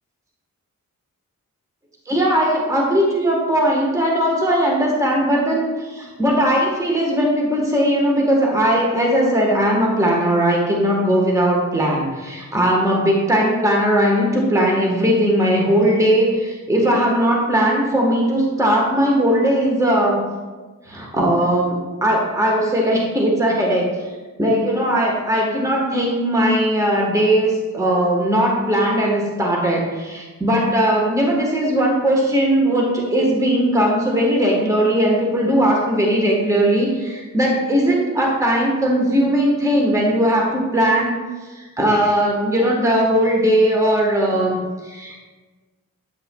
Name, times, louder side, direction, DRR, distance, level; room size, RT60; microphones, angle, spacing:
voice 1, 2.1-20.2 20.9-24.1 24.4-41.1 41.4-45.2, equal, 10° right, -2 dB, 1.1 m, -18 dB
8.5 x 5.5 x 2.2 m, 1.3 s
cardioid pair, 50°, 35 cm